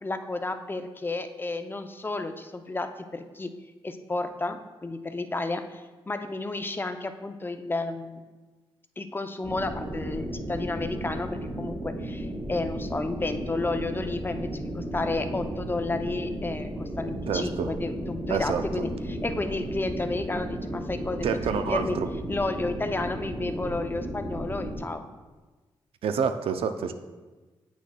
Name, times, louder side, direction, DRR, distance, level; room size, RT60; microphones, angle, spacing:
voice 1, 0.0-3.5 3.8-8.2 9.0-22.0 22.3-25.1, left 2 dB, 20° left, 7 dB, 0.5 m, -32 dB
sound 1, 9.4-24.8, right 1 dB, 15° right, 1.5 m, -34 dB
voice 2, 17.3-17.7 18.3-18.6 21.2-22.1 26.0-26.9, right 6 dB, 75° right, 8 dB, 0.4 m, -28 dB
8.3 x 6.1 x 2.2 m, 1.3 s
cardioid pair, 75°, 10 cm